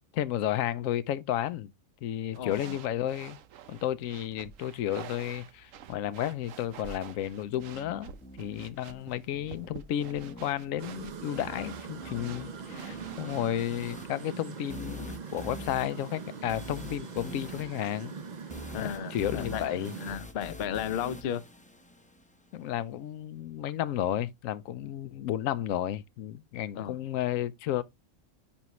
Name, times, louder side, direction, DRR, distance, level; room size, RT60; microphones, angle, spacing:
voice 1, 0.1-1.7 2.0-3.4 3.7-8.1 8.4-18.1 18.8-19.9 22.5-27.8, left 11 dB, 80° left, 1.0 m, -32 dB
sound 1, 2.3-13.8, right 8 dB, 75° right, 1.1 m, -49 dB
voice 2, 2.4-2.8 18.7-21.4 26.7-27.0, left 9 dB, 60° left, 0.8 m, -34 dB
sound 2, 7.5-22.5, left 1 dB, 10° left, 0.6 m, -46 dB
sound 3, 10.8-20.2, right 6 dB, 45° right, 0.6 m, -42 dB
10.0 x 3.6 x 3.0 m
omnidirectional pair, 1.4 m